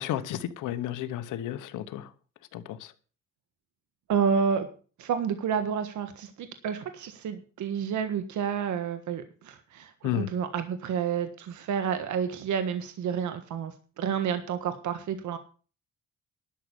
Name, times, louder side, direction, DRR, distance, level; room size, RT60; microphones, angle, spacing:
voice 1, 0.0-2.1 2.5-2.9 10.0-10.3, left 11 dB, 90° left, 1.1 m, -32 dB
voice 2, 4.1-4.7 5.0-15.4, right 7 dB, 75° right, 1.5 m, -30 dB
12.0 x 6.4 x 8.2 m
cardioid pair, 90°, 30 cm